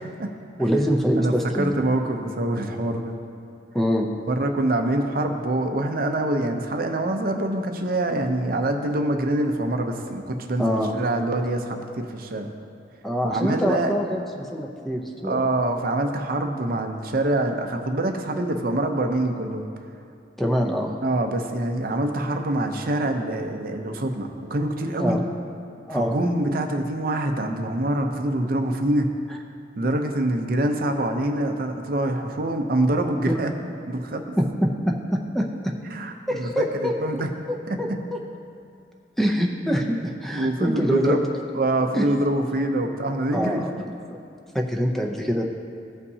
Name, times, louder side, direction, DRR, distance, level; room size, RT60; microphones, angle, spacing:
voice 1, 0.6-1.7 3.7-4.1 10.6-10.9 13.0-15.4 20.4-20.9 25.0-25.2 25.9-26.1 33.3-33.4 34.4-35.7 36.3-36.9 37.5-38.2 39.2-41.2 41.9-42.1 43.3-43.7 44.1-44.2 44.5-45.4, equal, ahead, 0 dB, 0.5 m, -24 dB
voice 2, 1.2-3.2 4.3-12.5 13.2-13.9 15.2-19.6 21.0-25.2 25.9-29.1 29.8-34.2 35.9-37.3 37.7-38.0 40.3-41.3 41.5-43.6, right 1 dB, 55° right, 5 dB, 0.6 m, -25 dB
15.5 x 5.5 x 2.7 m, 2.6 s
head